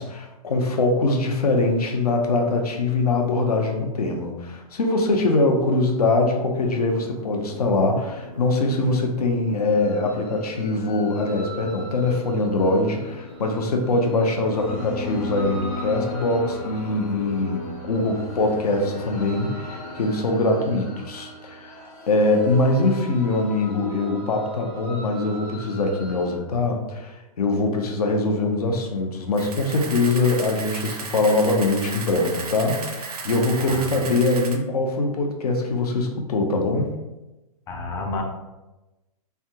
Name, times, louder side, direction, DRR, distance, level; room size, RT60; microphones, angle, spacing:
voice 1, 0.0-36.9, left 2 dB, 80° left, 3 dB, 0.7 m, -23 dB
sound 1, 6.5-20.0, equal, 55° left, 1.1 m, -42 dB
sound 2, 9.6-26.4, left 1 dB, 35° left, 0.8 m, -38 dB
Camera, 29.3-34.6, right 4 dB, 75° right, 0.6 m, -34 dB
voice 2, 33.6-33.9 37.7-38.2, left 2 dB, 15° left, 2 dB, 0.4 m, -30 dB
3.3 x 2.3 x 2.7 m, 1.0 s
hypercardioid pair, 130°, 19 cm